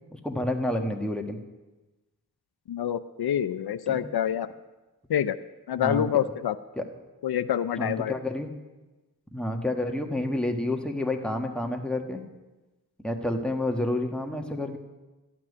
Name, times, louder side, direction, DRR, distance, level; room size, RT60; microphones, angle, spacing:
voice 1, 0.1-1.4 3.9-4.0 5.8-6.0 6.8-6.9 7.8-8.5 9.3-12.2 13.0-14.8, left 1 dB, ahead, 3 dB, 1.5 m, -29 dB
voice 2, 2.7-4.5 5.1-5.4 5.7-6.5 7.2-8.1, left 10 dB, 80° left, 13 dB, 0.6 m, -26 dB
13.0 x 6.0 x 9.7 m, 1.1 s
wide cardioid pair, 75°, 37 cm